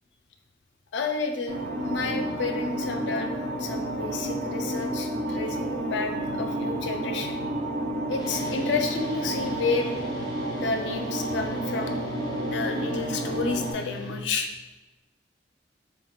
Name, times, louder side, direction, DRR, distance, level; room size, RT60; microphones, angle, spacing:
voice 1, 0.9-7.4 8.1-10.0 10.5-12.0 12.4-14.5, left 4 dB, 85° left, 4 dB, 0.5 m, -31 dB
sound 1, 1.5-13.7, right 1 dB, 55° right, 0.5 m, -30 dB
sound 2, 8.2-14.2, left 2 dB, 25° left, 0.7 m, -40 dB
3.8 x 3.6 x 2.3 m, 1.1 s
head